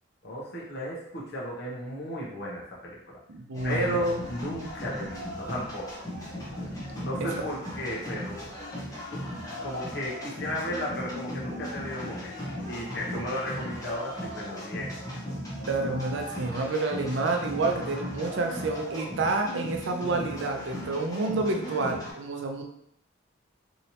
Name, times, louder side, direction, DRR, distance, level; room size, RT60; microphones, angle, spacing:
voice 1, 0.2-3.2 3.6-6.0 7.0-8.5 9.6-12.3 12.6-15.0, equal, 55° left, -5 dB, 0.9 m, -34 dB
voice 2, 3.3-4.0 15.7-22.6, right 3 dB, 65° right, 3 dB, 0.5 m, -29 dB
sound 1, 3.5-22.1, equal, 15° left, 0.7 m, -37 dB
3.1 x 2.8 x 2.8 m, 0.74 s
head